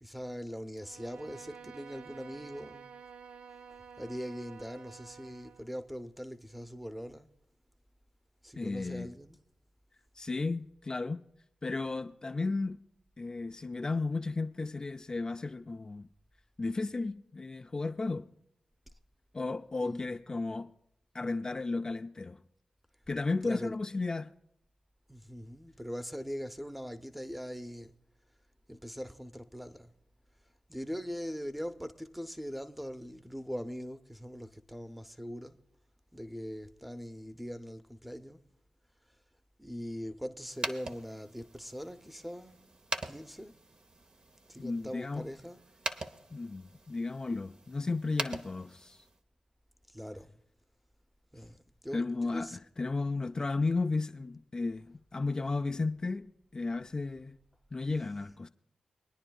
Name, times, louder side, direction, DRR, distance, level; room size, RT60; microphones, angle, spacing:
voice 1, 0.0-2.9 4.0-7.3 8.4-9.4 19.8-20.0 23.4-23.8 25.1-27.9 28.7-29.9 30.7-35.6 36.1-38.4 39.6-42.6 43.1-43.5 44.5-45.6 49.9-50.3 51.3-52.6 58.0-58.2, equal, 5° right, 0.8 m, -41 dB
Bowed string instrument, 0.8-5.7, right 6 dB, 70° right, 0.4 m, -51 dB
voice 2, 8.6-9.1 10.2-11.2 11.6-12.8 13.2-16.1 16.6-18.3 19.3-20.7 21.1-22.4 23.1-24.3 44.6-45.3 46.3-49.0 51.9-57.4 57.7-58.5, left 3 dB, 35° left, 0.4 m, -34 dB
sound 1, 40.5-49.2, right 2 dB, 50° right, 0.9 m, -43 dB
24.0 x 9.9 x 2.3 m
supercardioid pair, 40°, 2 cm